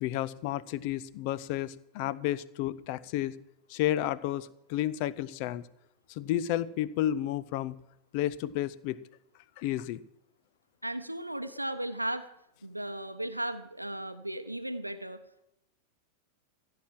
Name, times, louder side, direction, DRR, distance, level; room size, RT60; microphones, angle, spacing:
voice 1, 0.0-3.3 3.7-5.6 6.1-7.8 8.1-9.0 9.6-10.0, left 13 dB, 45° left, 18 dB, 0.6 m, -31 dB
voice 2, 10.8-12.3 12.6-15.4, right 1 dB, 85° right, 9 dB, 0.7 m, -36 dB
15.5 x 7.7 x 7.4 m, 0.82 s
figure-of-eight pair, 90°, 0 cm